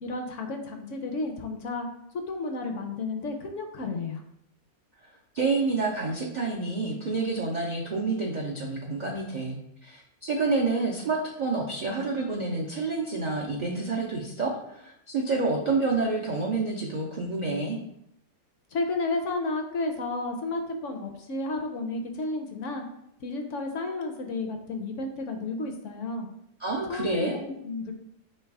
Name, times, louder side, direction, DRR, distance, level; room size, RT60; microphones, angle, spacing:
voice 1, 0.0-1.9 2.1-4.2 18.7-22.8 23.2-26.3 26.9-27.9, left 3 dB, 65° left, 4 dB, 0.8 m, -32 dB
voice 2, 5.3-17.8 26.6-27.4, right 3 dB, 85° right, -2 dB, 0.4 m, -28 dB
3.3 x 3.0 x 4.6 m, 0.77 s
omnidirectional pair, 1.6 m